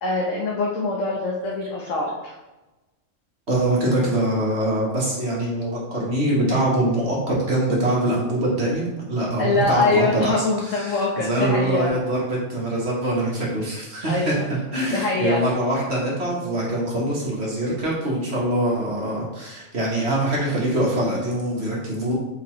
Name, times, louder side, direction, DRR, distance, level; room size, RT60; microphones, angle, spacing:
voice 1, 0.0-2.3 9.4-11.9 14.0-14.4 14.9-15.4, left 3 dB, 80° left, -3 dB, 1.3 m, -23 dB
voice 2, 3.5-22.1, right 1 dB, 55° right, -4 dB, 1.6 m, -24 dB
6.7 x 4.7 x 3.1 m, 1.1 s
omnidirectional pair, 1.3 m